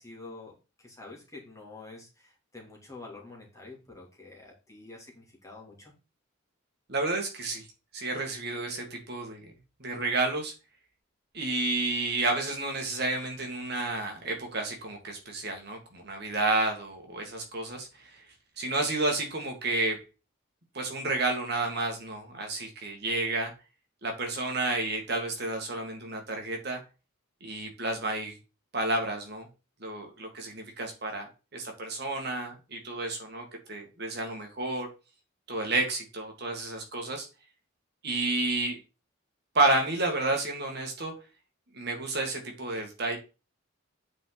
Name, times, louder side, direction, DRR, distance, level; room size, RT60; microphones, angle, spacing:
voice 1, 0.0-5.9, left 3 dB, 15° left, -2 dB, 2.5 m, -47 dB
voice 2, 6.9-7.7 7.9-9.5 9.8-10.5 11.3-18.2 18.6-20.0 20.7-23.5 24.0-26.8 27.4-28.4 28.7-29.5 29.8-34.9 35.5-37.3 38.0-38.8 39.5-41.1 41.7-43.2, right 2 dB, 50° right, 2 dB, 1.9 m, -31 dB
8.9 x 4.5 x 4.0 m, 0.31 s
head